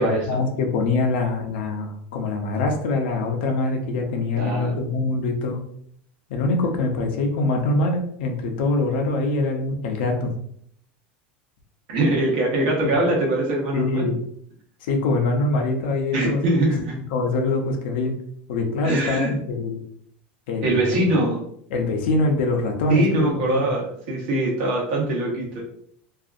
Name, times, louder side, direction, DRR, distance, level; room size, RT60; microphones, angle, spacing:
voice 1, 0.0-5.6 6.3-10.4 13.7-14.2 14.8-16.7 17.1-18.1 18.5-19.8 20.5-21.0 21.7-23.7, left 3 dB, 65° left, 2 dB, 0.5 m, -24 dB
voice 2, 4.4-4.8 11.9-14.1 16.1-17.0 18.8-19.3 20.6-21.4 22.9-25.6, right 1 dB, 50° right, -2 dB, 0.9 m, -22 dB
2.6 x 2.4 x 2.4 m, 0.66 s
supercardioid pair, 180°, 6 cm